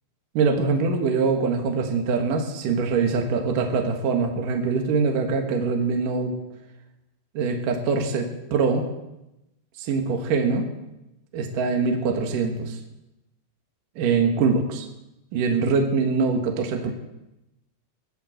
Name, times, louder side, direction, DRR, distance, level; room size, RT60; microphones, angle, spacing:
voice 1, 0.3-6.4 7.3-8.9 9.8-10.7 11.3-12.8 14.0-14.8 15.3-16.9, right 4 dB, 60° right, 3 dB, 2.8 m, -23 dB
22.0 x 8.1 x 7.9 m, 0.92 s
omnidirectional pair, 5.1 m